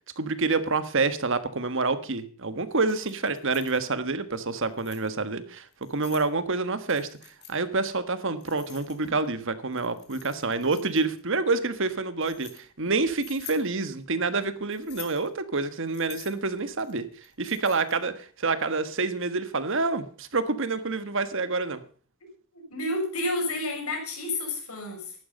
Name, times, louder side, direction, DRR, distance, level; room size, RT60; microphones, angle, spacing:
voice 1, 0.2-17.1 17.4-21.8, right 3 dB, 60° right, 12 dB, 1.5 m, -28 dB
Keys jangling, 2.7-3.8 4.5-5.1 5.7-6.3 6.9-7.6 8.4-9.3 9.7-11.2 11.8-12.6 13.2-13.7 14.7-15.3 15.9-18.0, left 9 dB, 50° left, 3.3 m, -47 dB
voice 2, 22.5-25.1, left 1 dB, 80° left, 2 dB, 6.4 m, -30 dB
14.5 x 11.5 x 5.5 m, 0.43 s
head